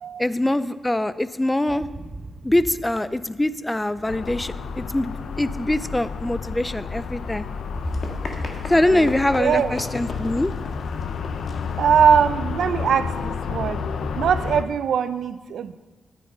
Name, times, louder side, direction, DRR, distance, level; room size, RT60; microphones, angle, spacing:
voice 1, 0.2-1.9 2.4-7.5 8.7-10.5, left 1 dB, 10° left, 14 dB, 0.4 m, -23 dB
sound 1, 1.7-9.6, right 2 dB, 30° right, 1.0 m, -45 dB
sound 2, 4.1-14.6, left 5 dB, 80° left, 0.7 m, -30 dB
Run, 7.7-13.2, left 2 dB, 50° left, 1.7 m, -39 dB
voice 2, 9.4-9.8 11.8-13.8 14.1-15.8, right 7 dB, 80° right, 13 dB, 0.5 m, -21 dB
11.5 x 9.4 x 5.5 m, 1.2 s
wide cardioid pair, 135°, 0 cm